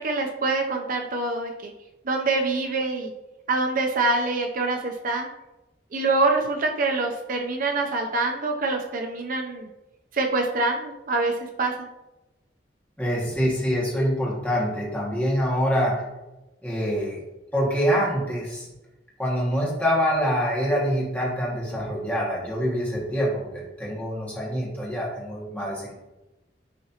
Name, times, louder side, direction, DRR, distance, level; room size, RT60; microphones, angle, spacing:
voice 1, 0.0-1.7 2.1-3.1 3.5-5.3 5.9-9.7 10.1-11.7, right 3 dB, 50° right, 3 dB, 0.6 m, -25 dB
voice 2, 13.0-16.0 16.6-17.2 17.5-18.7 19.2-26.0, equal, 10° left, -5 dB, 1.9 m, -25 dB
10.5 x 3.8 x 2.9 m, 1.0 s
head